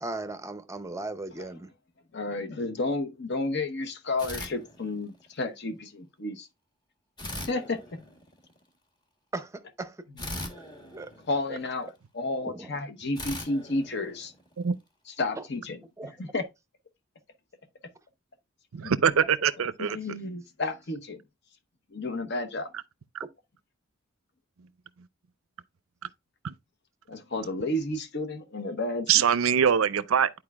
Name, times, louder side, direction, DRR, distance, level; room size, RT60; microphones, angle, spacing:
voice 1, 0.0-1.7 9.3-10.1 10.9-11.1 11.5-11.9 12.4-12.8 15.4-15.5 16.0-16.1 20.0-20.1, right 2 dB, 15° right, 0.6 m, -37 dB
voice 2, 2.1-6.5 7.5-8.0 11.3-14.3 15.1-15.8 16.2-16.5 18.8-18.9 19.8-21.2 21.9-22.7 27.1-29.2, left 2 dB, 55° left, 0.9 m, -31 dB
sound 1, 4.2-5.3 7.2-8.6 10.2-11.9 13.2-14.7, left 1 dB, 20° left, 1.1 m, -40 dB
voice 3, 18.7-20.0 23.1-23.2 26.4-26.5 29.1-30.3, right 7 dB, 85° right, 0.5 m, -23 dB
10.5 x 4.5 x 2.3 m
head